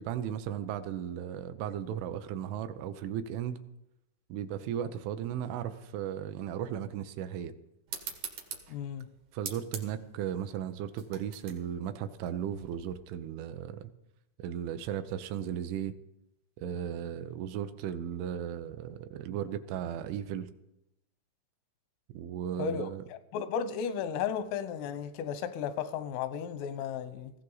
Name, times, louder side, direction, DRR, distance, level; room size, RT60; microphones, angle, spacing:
voice 1, 0.0-3.6 4.3-7.5 9.3-13.9 14.4-15.9 16.6-20.5 22.1-23.0, right 9 dB, 80° right, 3.1 m, -36 dB
sound 1, 7.9-13.0, right 7 dB, 60° right, 2.1 m, -44 dB
voice 2, 8.7-9.1 22.6-27.3, left 7 dB, 90° left, 3.5 m, -34 dB
18.0 x 15.5 x 3.9 m
omnidirectional pair, 5.7 m